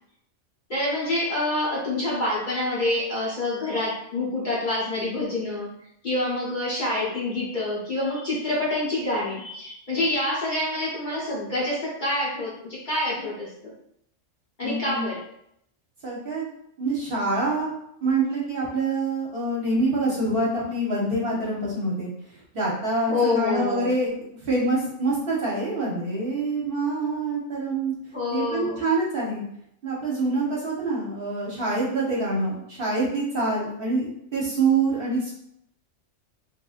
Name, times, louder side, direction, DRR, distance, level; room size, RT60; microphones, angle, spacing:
voice 1, 0.7-5.7 6.0-13.7 14.6-15.2 23.1-24.0 28.1-28.8, left 2 dB, 45° left, -6 dB, 0.8 m, -27 dB
voice 2, 14.6-15.0 16.0-16.5 16.8-17.7 18.0-22.1 22.5-27.9 28.3-29.4 29.8-35.3, right 2 dB, 55° right, -4 dB, 0.8 m, -26 dB
3.0 x 2.5 x 2.4 m, 0.75 s
omnidirectional pair, 1.3 m